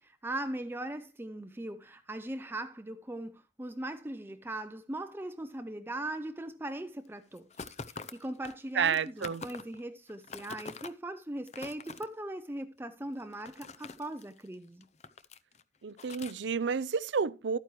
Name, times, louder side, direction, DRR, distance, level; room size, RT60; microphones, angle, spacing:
voice 1, 0.0-14.9, right 1 dB, 10° right, 0.5 m, -40 dB
sound 1, 7.4-9.8 10.1-10.9 11.4-12.0 13.1-14.5 14.8-15.6 16.0-16.3, left 5 dB, 40° left, 0.6 m, -45 dB
voice 2, 8.7-9.4 15.8-17.6, right 6 dB, 90° right, 0.5 m, -30 dB
12.5 x 9.3 x 3.1 m
head